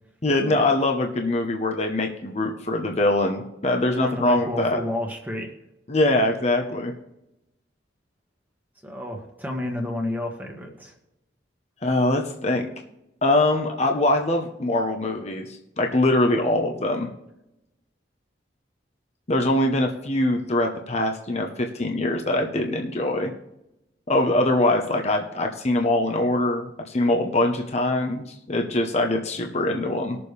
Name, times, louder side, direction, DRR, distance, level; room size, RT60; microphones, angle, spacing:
voice 1, 0.2-4.8 5.9-6.9 11.8-12.7 13.2-17.1 19.3-23.3 24.1-30.2, left 1 dB, 35° left, 3 dB, 0.9 m, -23 dB
voice 2, 4.0-5.5 8.8-10.9, left 1 dB, 10° right, 1 dB, 1.5 m, -31 dB
20.0 x 7.0 x 3.3 m, 0.88 s
head